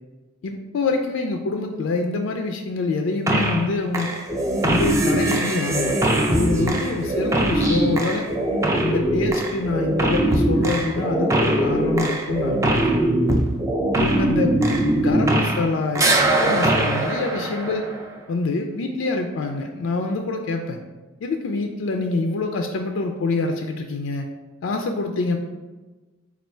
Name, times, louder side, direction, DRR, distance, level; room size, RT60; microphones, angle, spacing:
voice 1, 0.4-4.1 4.6-8.2 8.8-13.0 14.0-14.6 15.0-17.8 18.3-20.8 21.2-24.3 24.6-25.4, left 3 dB, 75° left, 4 dB, 0.3 m, -26 dB
sound 1, 3.3-3.7 3.9-15.7 16.0-18.2, right 1 dB, 15° right, 0.3 m, -21 dB
4.4 x 2.3 x 4.3 m, 1.2 s
head